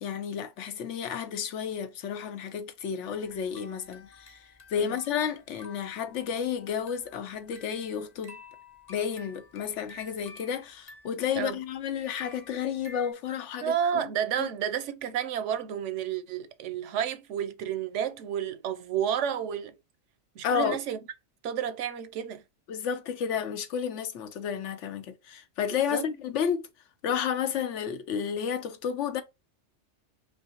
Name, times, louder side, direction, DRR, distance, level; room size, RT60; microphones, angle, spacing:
voice 1, 0.0-4.4 4.7-8.4 8.9-14.1 14.4-14.5 20.4-20.8 22.7-26.7 27.0-29.2, left 8 dB, 80° left, 1.0 m, -31 dB
sound 1, 3.0-13.1, left 4 dB, 40° left, 0.7 m, -52 dB
voice 2, 13.6-19.8 20.4-21.0 21.4-22.4 25.9-26.0, right 9 dB, 90° right, 1.0 m, -31 dB
5.4 x 2.0 x 2.8 m
omnidirectional pair, 1.2 m